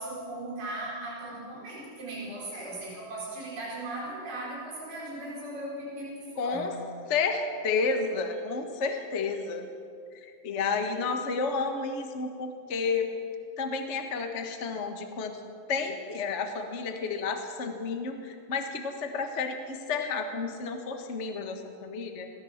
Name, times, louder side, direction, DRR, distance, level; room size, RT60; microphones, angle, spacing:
voice 1, 0.0-6.8, right 1 dB, 80° right, -5 dB, 6.1 m, -38 dB
voice 2, 6.4-6.7 7.1-9.7 10.2-13.1 13.6-15.4 15.7-22.3, left 4 dB, 65° left, 5 dB, 0.7 m, -31 dB
21.5 x 17.0 x 7.3 m, 2.4 s
omnidirectional pair, 3.9 m